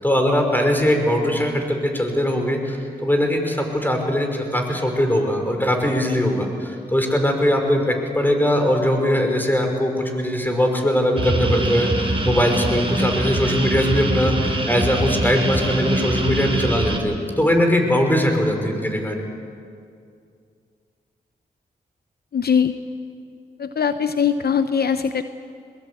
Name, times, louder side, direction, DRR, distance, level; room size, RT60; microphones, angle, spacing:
voice 1, 0.0-19.2, equal, 10° left, 3 dB, 5.6 m, -21 dB
sound 1, 11.2-17.0, right 2 dB, 30° right, 4.1 m, -23 dB
voice 2, 22.3-22.7 23.6-25.2, left 7 dB, 60° left, 10 dB, 0.8 m, -21 dB
21.5 x 20.5 x 8.5 m, 2.4 s
cardioid pair, 45°, 18 cm